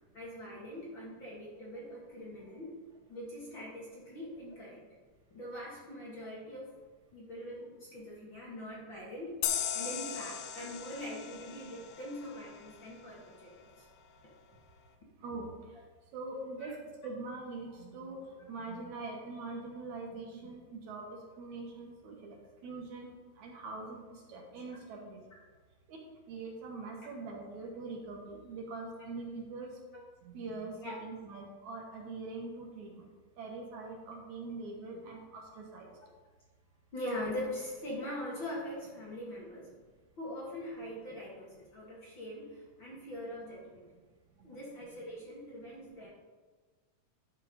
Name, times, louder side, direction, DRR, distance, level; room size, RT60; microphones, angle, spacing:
voice 1, 0.1-2.8 3.1-4.8 5.3-6.7 7.1-9.4 9.7-13.9 16.6-16.7 30.8-31.1 36.9-39.7 40.2-43.9 44.4-46.1, left 1 dB, 40° left, -5 dB, 2.1 m, -42 dB
sound 1, 9.4-12.8, left 9 dB, 90° left, 2.4 m, -37 dB
voice 2, 16.1-16.8 17.0-18.2 18.5-21.1 21.4-22.4 22.6-23.1 23.4-24.0 24.3-25.2 25.9-26.0 26.3-29.7 30.2-33.0 33.4-35.9, right 3 dB, 65° right, 0 dB, 2.6 m, -43 dB
11.0 x 5.6 x 5.2 m, 1.4 s
omnidirectional pair, 3.8 m